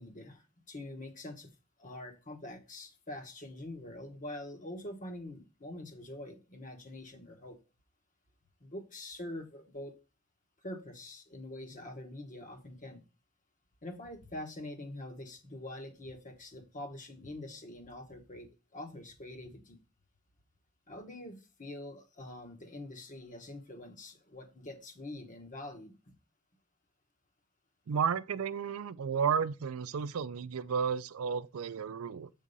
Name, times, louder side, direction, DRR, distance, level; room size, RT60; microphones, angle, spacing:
voice 1, 0.0-1.5 1.8-7.6 8.6-9.9 10.6-13.0 13.8-19.8 20.9-25.9, left 1 dB, 40° left, 1.2 m, -45 dB
voice 2, 27.9-32.3, right 6 dB, 80° right, 0.4 m, -32 dB
7.4 x 3.7 x 5.3 m
head